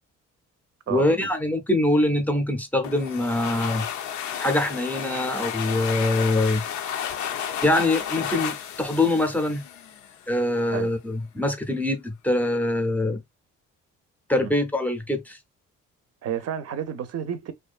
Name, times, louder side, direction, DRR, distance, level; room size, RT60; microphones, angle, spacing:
voice 1, 0.9-3.9 4.4-6.6 7.6-9.6 10.3-13.2 14.3-15.4, left 1 dB, 5° left, 0.6 m, -24 dB
sound 1, 2.8-10.3, left 9 dB, 70° left, 0.5 m, -32 dB
voice 2, 16.2-17.5, right 9 dB, 55° right, 0.6 m, -30 dB
2.6 x 2.2 x 2.3 m
cardioid pair, 90°, 30 cm